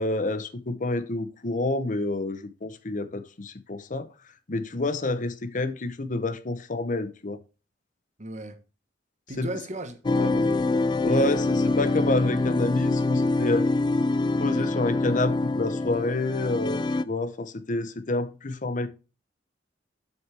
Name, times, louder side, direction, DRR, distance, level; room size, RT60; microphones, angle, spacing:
voice 1, 0.0-4.1 4.5-7.4 9.4-9.5 11.0-13.7 14.4-18.9, left 2 dB, 45° left, 0.8 m, -28 dB
voice 2, 8.2-8.6 9.3-10.7, right 2 dB, 40° right, 1.2 m, -36 dB
sound 1, 10.0-17.0, left 2 dB, 25° left, 0.3 m, -25 dB
7.5 x 6.3 x 3.3 m
head